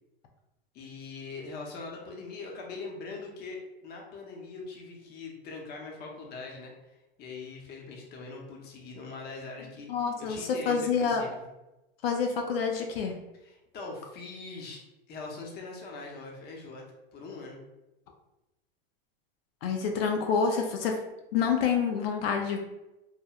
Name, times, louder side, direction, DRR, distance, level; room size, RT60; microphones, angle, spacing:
voice 1, 0.7-9.9 10.3-11.4 13.3-14.8 15.1-16.8 17.1-17.6, left 3 dB, 35° left, 0 dB, 0.7 m, -42 dB
voice 2, 9.9-11.2 12.0-13.1 19.6-21.0 21.3-22.6, left 6 dB, 75° left, 2 dB, 0.5 m, -27 dB
3.2 x 2.1 x 2.3 m, 0.97 s
hypercardioid pair, 115°, 30 cm